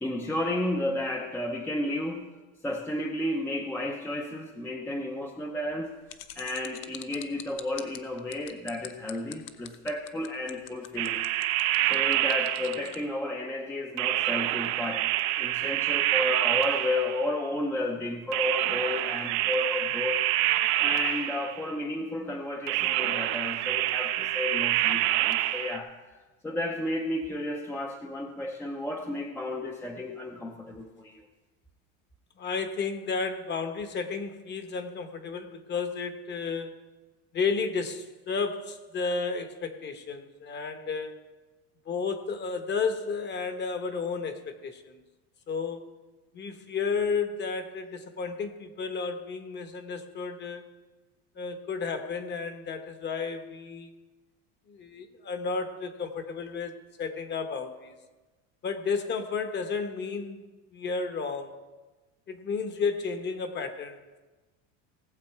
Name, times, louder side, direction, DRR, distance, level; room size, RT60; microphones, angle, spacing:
voice 1, 0.0-2.4 2.6-5.9 6.3-11.2 11.8-20.3 20.8-25.9 26.4-31.3, left 1 dB, 5° left, 2 dB, 0.6 m, -32 dB
sound 1, 6.1-13.0, left 14 dB, 60° left, 0.8 m, -43 dB
sound 2, 11.0-13.1 14.0-17.4 18.3-21.7 22.7-25.8, right 15 dB, 85° right, 0.8 m, -27 dB
voice 2, 32.4-36.8 37.3-41.1 41.9-45.0 45.5-45.9 46.3-50.6 51.4-53.9 54.7-56.7 57.0-57.9 58.6-61.5 62.3-64.0, left 5 dB, 30° left, 8 dB, 1.1 m, -32 dB
18.5 x 7.5 x 4.7 m, 1.2 s
cardioid pair, 150°, 36 cm